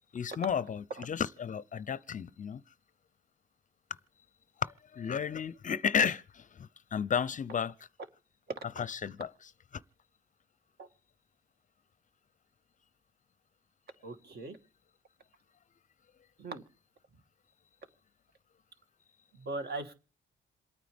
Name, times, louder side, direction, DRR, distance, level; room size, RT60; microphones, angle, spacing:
voice 1, 0.1-2.6 4.6-7.7 8.8-9.3 9.7-9.8, left 7 dB, 40° left, 0.6 m, -33 dB
voice 2, 14.0-14.6 16.4-16.6 19.4-19.9, right 2 dB, 55° right, 2.3 m, -39 dB
27.5 x 9.2 x 3.5 m
cardioid pair, 90°, 20 cm